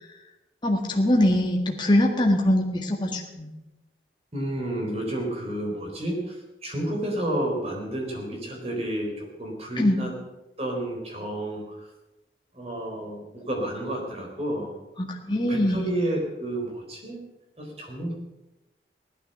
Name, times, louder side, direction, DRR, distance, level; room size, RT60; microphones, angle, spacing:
voice 1, 0.6-3.5 9.8-10.0 15.1-15.9, left 1 dB, 25° left, 1 dB, 1.8 m, -22 dB
voice 2, 4.3-10.1 10.6-11.9 12.5-14.7 15.5-17.2 17.6-18.1, right 1 dB, 35° right, 1 dB, 4.1 m, -31 dB
16.5 x 12.5 x 6.8 m, 0.99 s
head